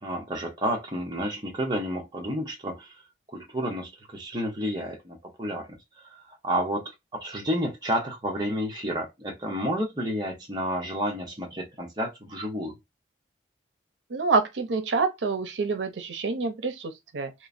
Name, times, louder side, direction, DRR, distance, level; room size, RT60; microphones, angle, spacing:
voice 1, 0.0-2.9 3.3-12.8, equal, 25° right, 0.8 m, -31 dB
voice 2, 14.1-17.3, right 4 dB, 90° right, 0.5 m, -27 dB
3.0 x 2.1 x 2.4 m
head